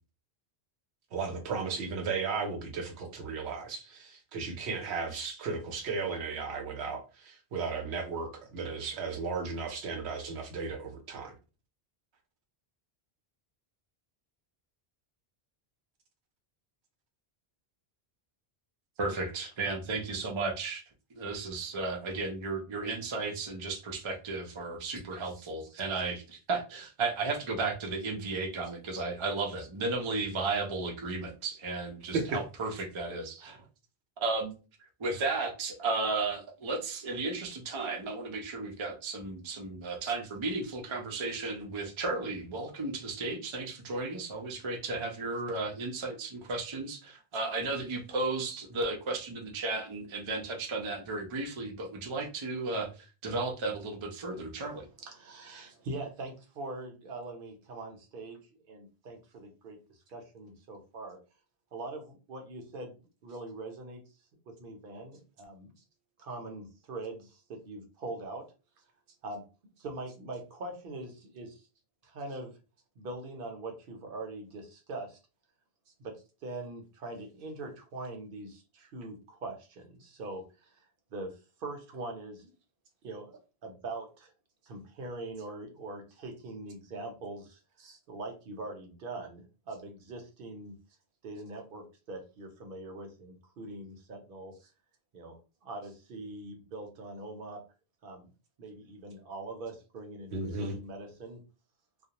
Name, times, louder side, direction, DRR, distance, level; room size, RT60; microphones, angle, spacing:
voice 1, 1.1-11.3 25.1-25.2 32.1-32.4 40.0-40.1 87.8-88.0 100.3-100.8, right 4 dB, 85° right, 0.9 m, -35 dB
voice 2, 19.0-20.8 21.1-33.6 34.2-34.5 35.0-54.9, right 3 dB, 40° right, 0.5 m, -34 dB
voice 3, 55.0-58.4 58.7-59.8 60.1-61.2 61.7-64.0 64.5-65.7 66.2-68.5 69.2-69.4 69.8-71.7 72.0-72.6 73.0-75.2 76.0-80.9 81.1-82.5 83.0-84.3 84.7-87.6 88.1-90.8 91.2-94.5 95.1-97.6 98.0-98.3 98.6-100.3 100.6-101.4, right 2 dB, 60° right, 0.8 m, -42 dB
2.4 x 2.0 x 2.8 m
omnidirectional pair, 1.1 m